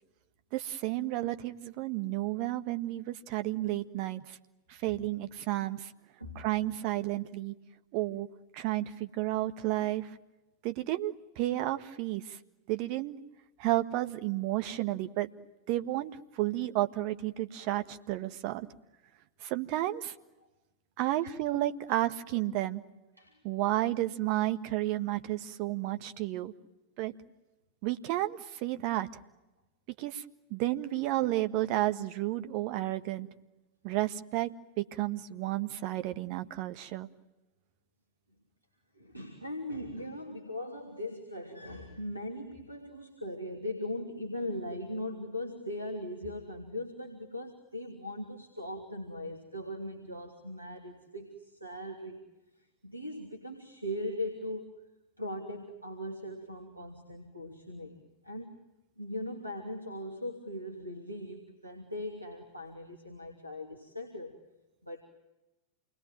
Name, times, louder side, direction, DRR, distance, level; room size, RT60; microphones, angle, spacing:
voice 1, 0.5-4.4 4.7-5.9 6.3-7.5 7.9-8.3 8.5-10.1 10.6-12.4 12.7-13.2 13.6-15.3 15.7-18.7 19.4-20.1 21.0-22.8 23.4-26.5 27.0-27.1 27.8-29.1 30.0-30.2 30.5-33.3 33.8-34.5 34.8-37.1, right 15 dB, 45° right, 10 dB, 1.5 m, -32 dB
voice 2, 38.9-52.2 52.6-54.8 55.2-58.0 58.2-58.6 59.0-64.4 64.8-65.0, left 1 dB, 90° right, 2 dB, 3.0 m, -39 dB
28.0 x 21.5 x 9.2 m, 0.99 s
figure-of-eight pair, 90°, 0 cm